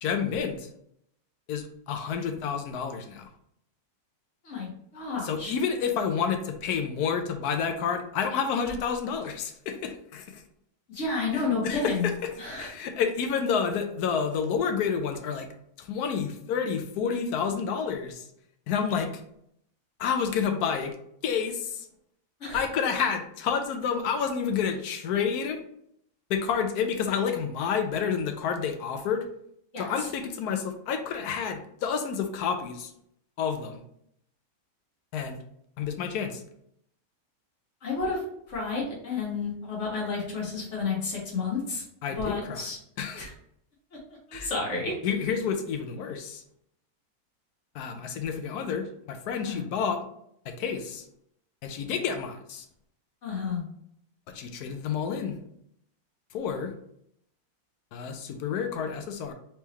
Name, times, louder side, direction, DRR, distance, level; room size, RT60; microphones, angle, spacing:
voice 1, 0.0-0.7 1.5-3.3 5.2-10.4 11.3-15.5 15.8-18.3 18.7-19.1 20.0-20.9 21.2-21.9 22.5-25.6 26.3-29.3 29.8-32.9 33.4-33.8 35.1-35.4 35.8-36.4 42.0-42.6 43.0-43.3 44.3-44.5 45.0-46.4 47.7-50.0 50.5-51.0 51.6-52.6 54.3-55.4 56.3-56.7 57.9-59.3, left 6 dB, 80° left, 6 dB, 1.2 m, -29 dB
voice 2, 4.4-5.5 10.9-12.1 12.4-12.7 22.4-22.6 29.7-30.1 37.8-38.2 38.5-41.8 42.2-42.8 43.1-43.3 44.3-44.9 49.4-49.6 53.2-53.6, left 4 dB, 50° left, -3 dB, 1.8 m, -31 dB
4.6 x 3.4 x 3.0 m, 0.71 s
omnidirectional pair, 1.6 m